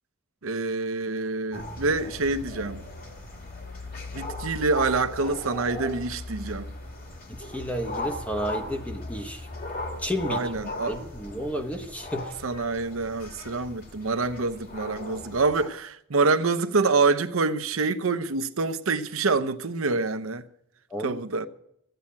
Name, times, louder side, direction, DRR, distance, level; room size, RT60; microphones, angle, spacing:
voice 1, 0.4-2.8 4.1-6.7 10.3-10.9 12.4-20.4 21.0-21.5, right 3 dB, 75° right, 0.8 m, -26 dB
sound 1, 1.5-15.7, left 2 dB, 45° left, 2.6 m, -38 dB
voice 2, 7.3-9.5 10.0-10.5 10.9-12.4 20.9-21.2, equal, 5° left, 0.9 m, -32 dB
14.0 x 9.1 x 8.6 m
head